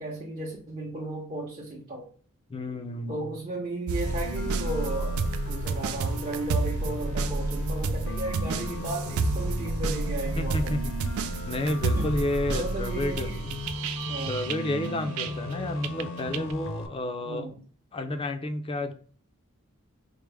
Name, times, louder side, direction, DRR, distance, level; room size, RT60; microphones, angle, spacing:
voice 1, 0.0-2.0 3.1-10.7 12.0-12.2 12.5-13.5 14.1-14.4 17.3-17.6, right 1 dB, 30° right, -5 dB, 0.8 m, -35 dB
voice 2, 2.5-3.3 10.4-11.0 11.5-13.3 14.1-17.5 17.9-18.9, left 1 dB, 25° left, 7 dB, 0.4 m, -31 dB
sound 1, 3.9-15.5 15.8-16.5, right 3 dB, 75° right, 0.3 m, -30 dB
sound 2, 4.1-16.9, left 2 dB, 70° left, 0.6 m, -37 dB
4.7 x 2.0 x 3.3 m, 0.43 s
head